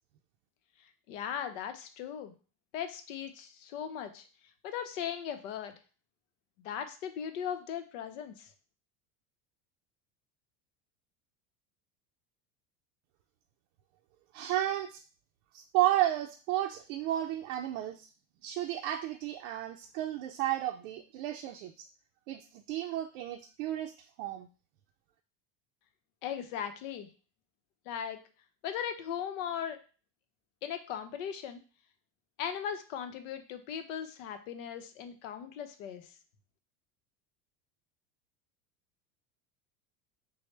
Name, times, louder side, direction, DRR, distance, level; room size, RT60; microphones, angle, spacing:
voice 1, 1.1-2.3 2.7-4.3 4.6-5.7 6.6-8.5 26.2-27.1 27.9-28.2 28.6-29.8 30.6-31.6 32.4-36.1, left 8 dB, 85° left, 8 dB, 0.8 m, -38 dB
voice 2, 14.3-15.0 15.5-18.1 18.4-21.9 22.3-23.9 24.2-24.5, right 13 dB, 80° right, 3 dB, 0.5 m, -32 dB
6.2 x 2.1 x 3.2 m, 0.37 s
supercardioid pair, 135°, 38 cm